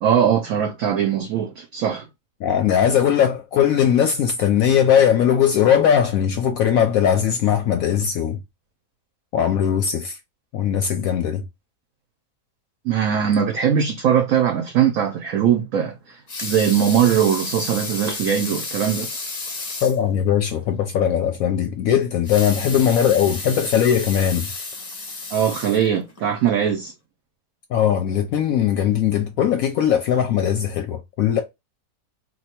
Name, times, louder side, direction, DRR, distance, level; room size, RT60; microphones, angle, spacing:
voice 1, 0.0-2.1 12.8-19.1 25.3-26.9, right 8 dB, 65° right, 0.9 m, -20 dB
voice 2, 2.4-8.4 9.3-10.2 10.5-11.4 19.8-24.5 27.7-31.4, left 9 dB, 70° left, 0.9 m, -19 dB
Water tap faucet / Sink (filling or washing) / Liquid, 16.1-20.0 20.5-20.6 20.9-21.0 22.1-26.3 26.8-26.9, left 3 dB, 40° left, 0.5 m, -32 dB
2.8 x 2.3 x 4.2 m
omnidirectional pair, 1.7 m